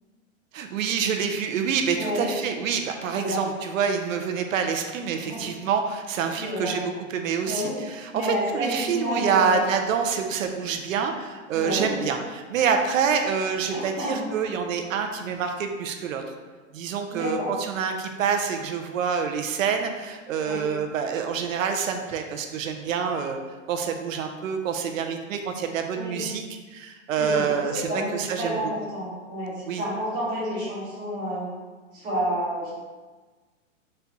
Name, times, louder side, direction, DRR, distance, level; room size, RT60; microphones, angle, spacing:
voice 1, 0.5-16.2 16.7-23.4 23.7-26.4 26.7-28.6 29.7-29.8, right 6 dB, 80° right, 5 dB, 0.6 m, -27 dB
voice 2, 2.0-2.3 3.1-3.4 5.2-5.4 6.4-6.9 7.4-7.8 8.1-9.7 11.5-11.9 13.7-14.2 17.1-17.5 20.4-20.6 25.9-26.2 27.2-31.5 31.9-32.7, equal, 10° right, -9 dB, 0.8 m, -30 dB
4.2 x 2.3 x 3.9 m, 1.3 s
hypercardioid pair, 170°, 39 cm